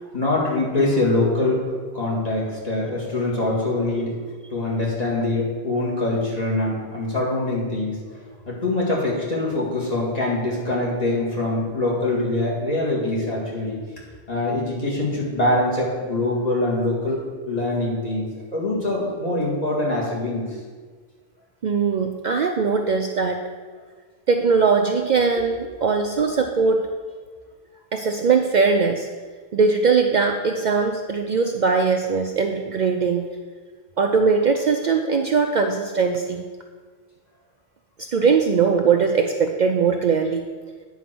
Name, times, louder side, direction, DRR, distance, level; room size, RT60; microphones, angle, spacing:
voice 1, 0.1-1.6 1.9-4.2 4.5-13.8 14.3-18.2 18.5-20.4, left 2 dB, 40° left, -5 dB, 2.1 m, -24 dB
voice 2, 21.6-23.4 24.3-26.9 27.9-29.1 29.5-33.3 34.0-36.4 38.0-40.5, right 5 dB, 55° right, 4 dB, 0.6 m, -20 dB
9.3 x 4.6 x 6.0 m, 1.5 s
omnidirectional pair, 1.0 m